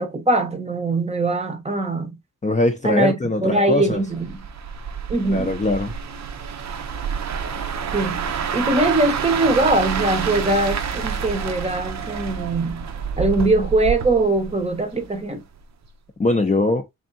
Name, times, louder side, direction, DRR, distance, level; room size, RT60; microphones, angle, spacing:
voice 1, 0.0-2.2 2.8-3.1 3.4-4.4 5.1-5.5 7.9-8.3 8.5-12.9 13.2-15.4, right 2 dB, 20° right, 0.7 m, -21 dB
voice 2, 2.4-4.0 5.3-5.9 16.2-16.8, left 2 dB, 25° left, 0.5 m, -21 dB
sound 1, 4.1-15.2 15.6-15.9, right 6 dB, 60° right, 0.6 m, -28 dB
3.5 x 3.5 x 2.6 m
wide cardioid pair, 140°, 32 cm